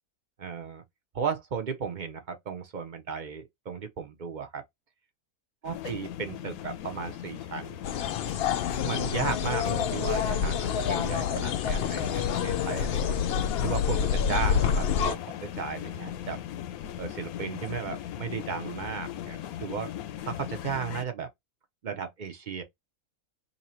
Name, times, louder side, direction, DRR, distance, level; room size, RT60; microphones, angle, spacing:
voice 1, 0.4-0.8 1.1-4.6 5.6-7.8 8.8-13.2 13.6-16.4 17.0-19.9 20.2-21.3 21.8-22.6, right 6 dB, 55° right, 0.5 m, -35 dB
sound 1, 5.6-21.0, left 11 dB, 90° left, 1.0 m, -38 dB
sound 2, 7.8-15.2, left 8 dB, 70° left, 0.6 m, -28 dB
3.1 x 2.7 x 4.2 m
omnidirectional pair, 1.5 m